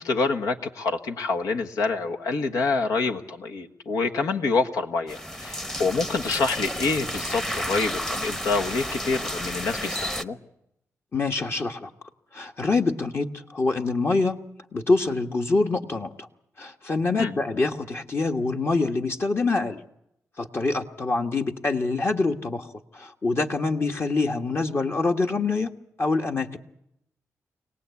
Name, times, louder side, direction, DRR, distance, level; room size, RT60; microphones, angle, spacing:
voice 1, 0.0-10.4 17.2-17.3, left 4 dB, 85° left, 3 dB, 1.5 m, -27 dB
sound 1, 5.1-10.2, equal, 10° left, 0.9 m, -31 dB
voice 2, 11.1-11.9 12.3-14.4 14.7-16.3 16.6-19.8 20.4-25.7 26.0-26.6, left 3 dB, 45° left, 3 dB, 1.5 m, -25 dB
25.5 x 18.0 x 8.4 m, 0.81 s
cardioid pair, 60°, 6 cm